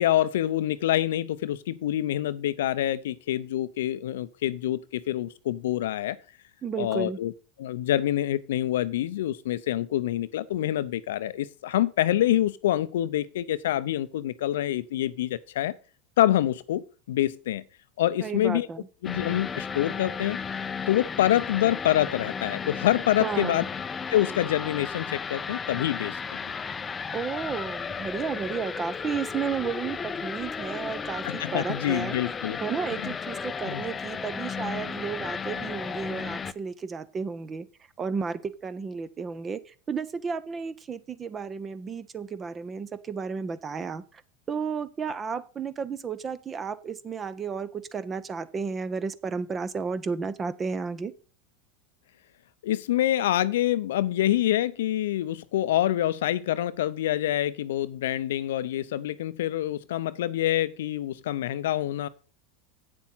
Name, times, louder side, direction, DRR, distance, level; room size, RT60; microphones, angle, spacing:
voice 1, 0.0-6.2 6.8-7.3 7.6-15.7 16.2-17.6 18.0-18.7 19.0-20.4 20.9-23.6 24.1-26.2 26.4-26.5 31.2-32.6 33.0-33.1 33.7-33.8 52.6-62.1, left 13 dB, 80° left, 0.6 m, -26 dB
voice 2, 6.6-7.2 18.2-18.9 23.2-23.7 27.1-32.1 32.6-37.7 38.0-44.2 44.5-51.1, right 5 dB, 25° right, 1.0 m, -33 dB
sound 1, 19.0-36.5, left 6 dB, 20° left, 0.6 m, -34 dB
8.7 x 7.2 x 5.7 m
hypercardioid pair, 105°, 0 cm